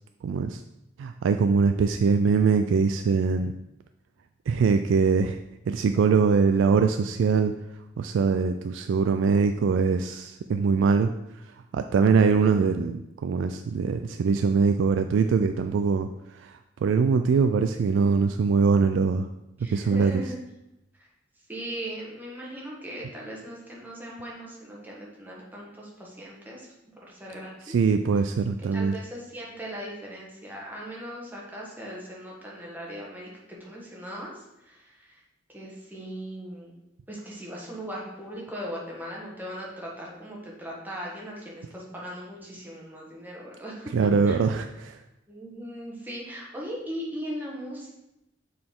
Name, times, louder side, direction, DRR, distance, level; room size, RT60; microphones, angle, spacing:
voice 1, 0.2-0.6 1.0-3.5 4.5-5.4 5.7-7.5 8.0-11.1 11.5-19.3 19.7-20.2 27.7-29.0 43.9-45.0, right 5 dB, 80° right, 7 dB, 0.3 m, -23 dB
voice 2, 19.6-20.3 21.0-21.1 21.5-26.7 27.1-27.7 28.7-33.3 33.6-35.2 35.5-36.8 37.1-43.9 44.3-44.4 45.3-47.9, equal, 10° right, -3 dB, 1.4 m, -39 dB
6.7 x 4.1 x 3.7 m, 0.89 s
head